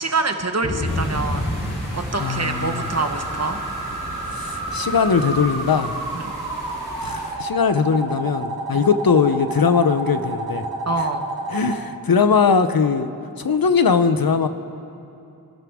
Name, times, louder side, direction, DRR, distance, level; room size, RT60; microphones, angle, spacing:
voice 1, 0.0-1.5 1.9-3.6 6.1-6.3 8.7-8.9 10.9-11.3, right 3 dB, 45° right, 6 dB, 1.1 m, -25 dB
Thunder / Rain, 0.6-5.6, left 1 dB, 35° left, 2.8 m, -31 dB
sound 1, 0.8-7.3, equal, 90° left, 3.7 m, -38 dB
sound 2, 2.1-11.8, right 2 dB, 75° right, 1.4 m, -30 dB
voice 2, 2.2-2.8 4.3-6.0 7.0-10.6 11.5-13.1 13.4-14.5, left 5 dB, 70° left, 10 dB, 0.7 m, -20 dB
26.0 x 12.0 x 3.6 m, 2.7 s
wide cardioid pair, 70°, 37 cm